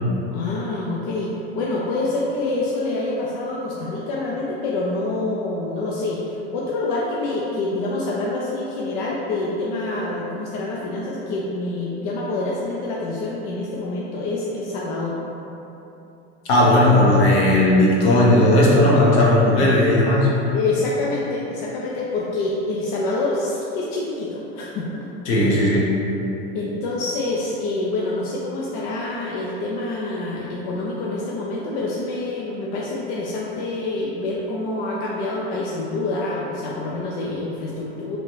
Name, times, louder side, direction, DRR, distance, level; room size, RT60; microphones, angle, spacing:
voice 1, 0.3-15.2 20.5-25.1 26.5-38.2, left 2 dB, 55° left, -4 dB, 0.5 m, -26 dB
voice 2, 16.5-20.3 25.3-25.9, left 1 dB, 70° left, -5 dB, 0.9 m, -16 dB
3.0 x 2.4 x 3.1 m, 2.9 s
hypercardioid pair, 85°, 34 cm